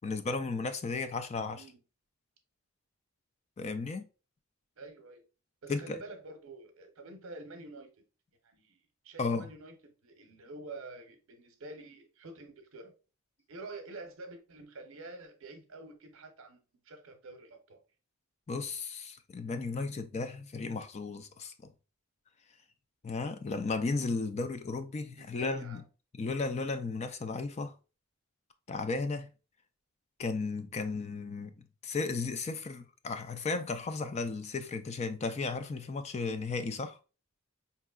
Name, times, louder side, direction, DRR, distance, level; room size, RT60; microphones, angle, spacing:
voice 1, 0.0-1.6 3.6-4.1 5.7-6.0 9.2-9.5 18.5-21.7 23.0-25.8 26.1-27.7 28.7-29.3 30.2-37.0, left 3 dB, 30° left, 0.3 m, -34 dB
voice 2, 4.8-5.2 5.6-7.9 8.4-8.8 9.0-12.9 13.5-17.8 25.2-25.8, right 2 dB, 70° right, 0.7 m, -48 dB
4.6 x 2.8 x 2.3 m
head